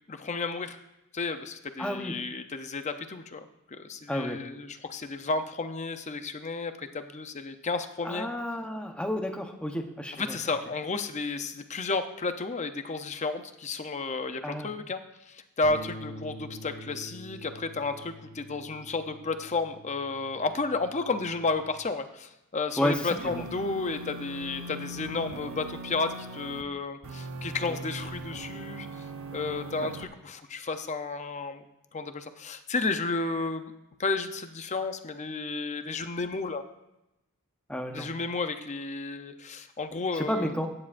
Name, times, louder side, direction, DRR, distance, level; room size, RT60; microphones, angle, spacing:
voice 1, 0.1-0.8 1.1-8.3 10.2-15.0 15.3-28.9 29.3-31.6 31.9-33.7 34.0-36.6 37.9-40.5, left 3 dB, 30° left, 8 dB, 0.6 m, -32 dB
voice 2, 1.8-2.2 4.1-4.4 8.0-10.4 14.4-14.7 22.8-23.4 27.7-27.8 37.7-38.1 40.1-40.7, left 1 dB, 5° left, 3 dB, 0.9 m, -31 dB
sound 1, 15.6-21.9, equal, 55° left, 1.3 m, -46 dB
sound 2, 23.2-26.6 27.0-30.0, right 2 dB, 70° right, 0.9 m, -40 dB
15.5 x 9.7 x 2.6 m, 0.91 s
head